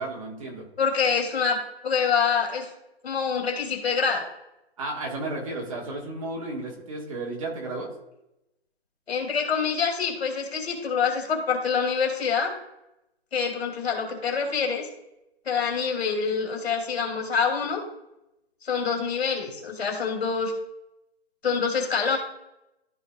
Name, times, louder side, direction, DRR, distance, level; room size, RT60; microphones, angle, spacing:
voice 1, 0.0-0.6 4.8-7.9, right 2 dB, 35° right, -2 dB, 1.8 m, -33 dB
voice 2, 0.8-1.6 1.8-2.7 3.0-4.2 9.1-12.5 13.3-14.9 15.5-17.8 18.6-20.5 21.4-22.2, left 6 dB, 80° left, 2 dB, 2.8 m, -26 dB
13.5 x 4.7 x 2.4 m, 0.87 s
hypercardioid pair, 180°, 31 cm